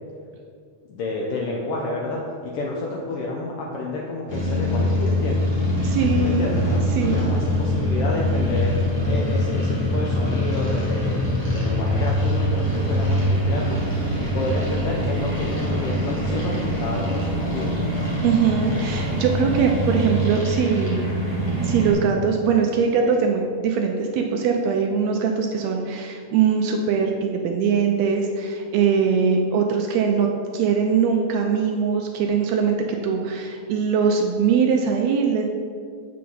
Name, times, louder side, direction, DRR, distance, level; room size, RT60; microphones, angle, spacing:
voice 1, 0.9-5.5 6.2-8.8 9.1-11.2 11.5-13.8 14.3-17.8, left 2 dB, 75° left, -2 dB, 1.3 m, -29 dB
sound 1, 4.3-21.9, equal, 25° left, 0.6 m, -23 dB
voice 2, 5.8-6.5 6.9-7.3 18.2-21.0 21.6-35.5, right 6 dB, 80° right, 2 dB, 1.6 m, -21 dB
7.4 x 5.7 x 3.9 m, 2.2 s
omnidirectional pair, 3.4 m